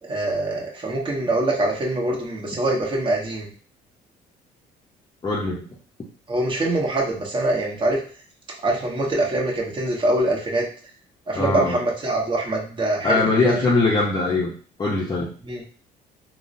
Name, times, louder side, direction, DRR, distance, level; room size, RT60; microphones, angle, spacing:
voice 1, 0.0-3.5 6.3-8.0 8.6-10.6 11.3-13.5 15.4-15.6, right 2 dB, 30° right, -3 dB, 1.0 m, -24 dB
voice 2, 5.2-5.6 11.4-11.8 13.0-14.5 14.8-15.3, left 3 dB, 25° left, -4 dB, 0.6 m, -21 dB
3.6 x 2.1 x 2.6 m, 0.42 s
cardioid pair, 110°, 17 cm